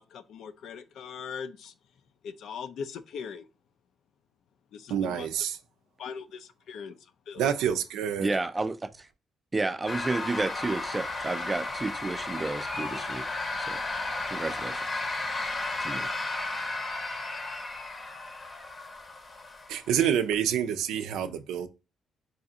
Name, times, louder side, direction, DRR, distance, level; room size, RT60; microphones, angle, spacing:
voice 1, 0.0-1.7 2.2-3.5 4.7-5.3 6.0-7.5, left 6 dB, 75° left, 0.4 m, -40 dB
voice 2, 4.9-5.6 7.4-8.3 19.7-21.7, right 9 dB, 90° right, 0.4 m, -27 dB
voice 3, 8.2-9.1 9.5-13.2 13.6-13.8 14.3-14.8 15.8-16.1, right 3 dB, 20° right, 0.4 m, -31 dB
sound 1, 9.9-20.0, left 2 dB, 35° left, 0.7 m, -34 dB
4.0 x 2.4 x 2.6 m
cardioid pair, 90°, 0 cm